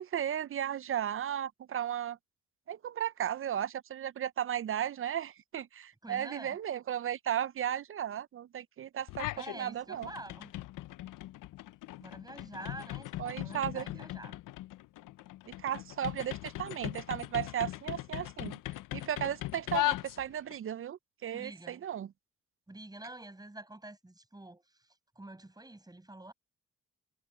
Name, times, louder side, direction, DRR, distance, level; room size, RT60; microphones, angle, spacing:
voice 1, 0.0-2.2 2.7-10.1 13.2-14.0 15.6-18.6 18.9-22.1, right 10 dB, 45° right, 0.5 m, -35 dB
voice 2, 6.0-6.6 9.4-10.5 12.0-14.4 21.3-21.9 22.7-26.3, right 2 dB, 10° right, 5.8 m, -47 dB
sound 1, 9.1-9.6 9.9-20.6, left 16 dB, 85° left, 0.6 m, -39 dB
cardioid pair, 85°, 31 cm